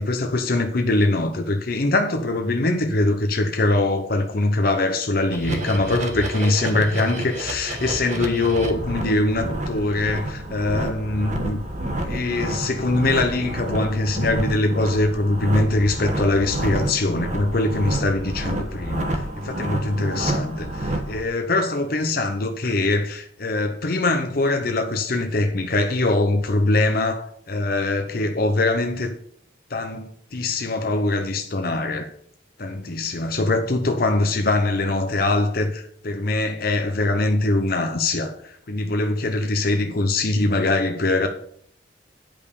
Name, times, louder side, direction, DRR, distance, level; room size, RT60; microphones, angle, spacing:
voice 1, 0.0-29.1 29.7-32.1 32.6-41.3, left 2 dB, 55° left, 0.8 m, -23 dB
sound 1, 5.3-21.2, right 1 dB, 40° right, 1.3 m, -29 dB
10.5 x 5.4 x 6.8 m
head